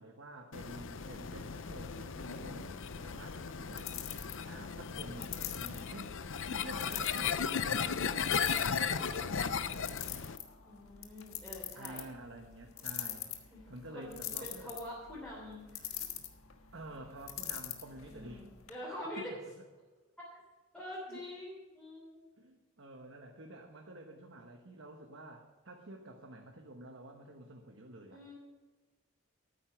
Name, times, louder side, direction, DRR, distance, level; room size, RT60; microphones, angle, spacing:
voice 1, 0.0-2.7 3.0-3.9 4.5-6.1 6.5-9.9 11.7-14.7 16.7-18.5 19.2-19.3 21.1-21.2 22.4-28.2, right 1 dB, 60° right, 2 dB, 1.2 m, -50 dB
sound 1, 0.5-10.4, left 6 dB, 60° left, 0.6 m, -36 dB
sound 2, 1.2-18.7, left 10 dB, 80° left, 1.4 m, -46 dB
voice 2, 2.4-2.9 4.4-5.0 10.6-12.0 13.5-13.6 13.9-16.0 18.1-19.3 20.7-22.2 28.1-28.3, left 1 dB, 5° left, -7 dB, 3.3 m, -46 dB
13.5 x 9.4 x 5.9 m, 1.3 s
head